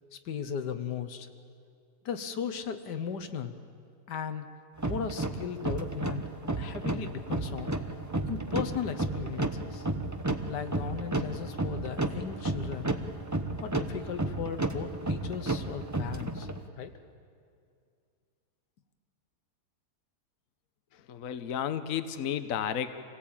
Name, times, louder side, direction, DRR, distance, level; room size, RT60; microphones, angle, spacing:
voice 1, 0.2-1.3 2.0-3.5 4.1-4.5 4.9-6.2 6.6-7.7 8.3-9.9 10.5-12.9 13.6-16.5 16.8-16.9, left 7 dB, 85° left, 9 dB, 1.7 m, -36 dB
sound 1, 4.8-16.6, right 2 dB, 15° right, 0.7 m, -33 dB
voice 2, 21.1-22.9, left 9 dB, 60° left, 10 dB, 1.2 m, -32 dB
26.5 x 17.5 x 8.8 m, 2.3 s
omnidirectional pair, 1.8 m